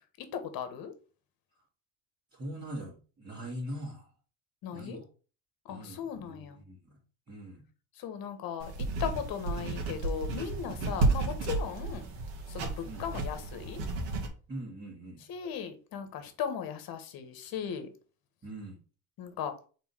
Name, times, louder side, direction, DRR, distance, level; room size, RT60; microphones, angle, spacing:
voice 1, 0.3-0.9 4.6-5.0 5.7-6.6 8.0-12.1 12.5-13.8 15.3-17.9 19.2-19.5, left 8 dB, 50° left, 1.4 m, -37 dB
voice 2, 2.3-4.1 4.7-5.0 5.7-7.0 7.3-7.6 10.9-11.1 12.8-13.1 14.5-15.2 18.4-18.8, right 1 dB, 25° right, 2.4 m, -42 dB
sound 1, 8.6-14.3, right 3 dB, 85° right, 1.9 m, -32 dB
4.6 x 4.1 x 5.5 m
cardioid pair, 125°, 45 cm